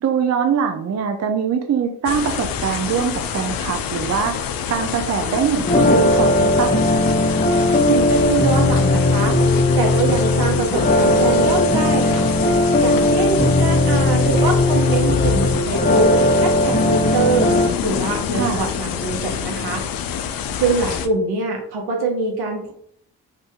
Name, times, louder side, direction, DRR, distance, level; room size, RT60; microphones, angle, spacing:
voice 1, 0.0-4.4 4.7-6.7 18.3-18.7, right 7 dB, 40° right, 5 dB, 0.5 m, -22 dB
sound 1, 2.0-21.1, left 8 dB, 60° left, 0.5 m, -27 dB
sound 2, 5.7-17.7, left 1 dB, 20° left, 0.9 m, -17 dB
voice 2, 7.8-9.3 9.8-12.3 12.8-16.1 16.3-17.5 17.8-19.8 20.6-22.7, right 4 dB, 75° right, 2 dB, 1.0 m, -24 dB
2.7 x 2.7 x 3.5 m, 0.63 s
supercardioid pair, 45°, 39 cm